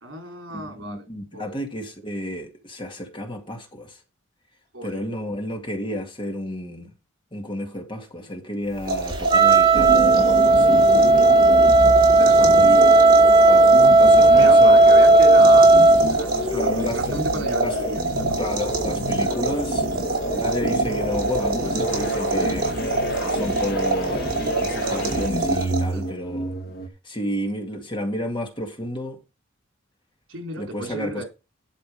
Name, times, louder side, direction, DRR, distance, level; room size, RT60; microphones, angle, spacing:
voice 1, 0.0-1.1 1.3-1.6 4.7-5.0 10.8-11.2 12.1-12.7 13.8-18.4 25.9-26.1 30.3-31.2, right 1 dB, 75° right, 4.1 m, -34 dB
voice 2, 0.5-4.0 4.8-6.9 7.3-10.9 12.4-12.9 13.5-14.8 16.5-17.2 17.6-18.0 18.4-19.9 20.3-22.7 23.2-26.5 27.0-29.2 30.6-31.2, left 1 dB, 25° left, 1.9 m, -31 dB
sound 1, 8.7-26.1, right 3 dB, 45° right, 4.6 m, -27 dB
Wind instrument woodwind instrument, 9.3-16.1, right 2 dB, 25° right, 1.0 m, -13 dB
sound 2, 9.7-26.9, equal, 55° left, 1.6 m, -29 dB
12.0 x 5.2 x 5.2 m
head